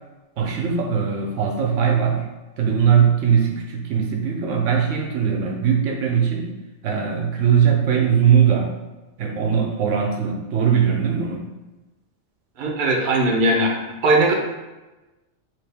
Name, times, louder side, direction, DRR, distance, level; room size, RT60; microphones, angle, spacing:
voice 1, 0.4-2.3 2.6-6.5 6.8-8.8 9.2-11.4, right 7 dB, 80° right, 1 dB, 0.9 m, -20 dB
voice 2, 12.6-14.3, right 2 dB, 50° right, -1 dB, 0.7 m, -19 dB
3.3 x 2.6 x 3.4 m, 1.1 s
omnidirectional pair, 1.3 m